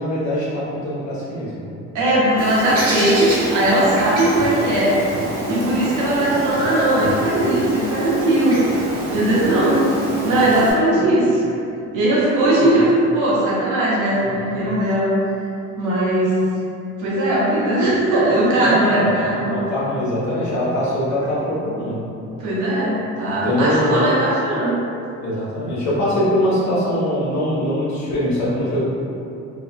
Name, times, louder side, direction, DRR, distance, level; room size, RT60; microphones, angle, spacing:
voice 1, 0.0-1.5 6.2-6.4 10.9-11.1 12.5-12.8 14.2-14.3 18.6-19.1 19.5-22.0 23.4-24.0 25.2-28.8, left 1 dB, 65° left, -8 dB, 1.1 m, -22 dB
voice 2, 1.9-5.0 5.5-8.6 9.1-9.8 10.2-11.4 11.9-12.9 13.1-15.1 15.8-16.3 17.0-19.5 22.4-24.8, right 1 dB, 90° right, -7 dB, 0.9 m, -18 dB
Bird, 2.4-10.7, right 1 dB, 60° right, 1.4 m, -27 dB
3.5 x 2.3 x 2.2 m, 2.7 s
cardioid pair, 90°, 30 cm